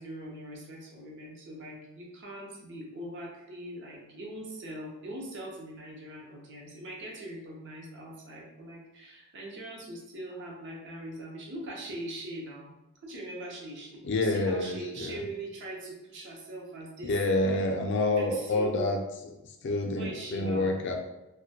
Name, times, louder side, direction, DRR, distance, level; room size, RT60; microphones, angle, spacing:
voice 1, 0.0-12.7 13.0-17.2 18.2-18.9 19.9-20.9, right 1 dB, 60° right, -1 dB, 0.6 m, -41 dB
voice 2, 14.0-15.2 17.0-19.0 19.6-20.9, left 2 dB, 60° left, 2 dB, 0.4 m, -28 dB
2.1 x 2.1 x 2.7 m, 0.95 s
head